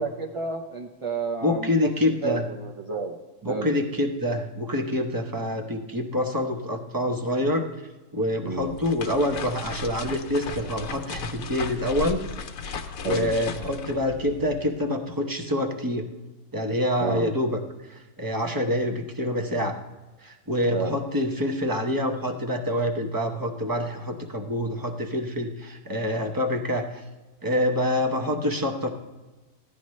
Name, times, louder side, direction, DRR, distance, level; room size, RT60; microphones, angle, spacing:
voice 1, 0.0-1.9 2.2-3.2 3.5-3.7 8.4-8.7 13.0-13.3 17.0-17.3 20.7-21.0, right 4 dB, 55° right, 1 dB, 0.3 m, -30 dB
voice 2, 1.4-2.4 3.4-7.7 8.1-12.2 12.8-16.1 16.5-17.6 17.9-19.8 20.2-27.0 27.4-28.9, left 1 dB, 20° right, 4 dB, 0.6 m, -26 dB
sound 1, 8.5-14.8, left 5 dB, 70° left, 1.1 m, -36 dB
14.5 x 10.0 x 3.2 m, 1.2 s
omnidirectional pair, 1.6 m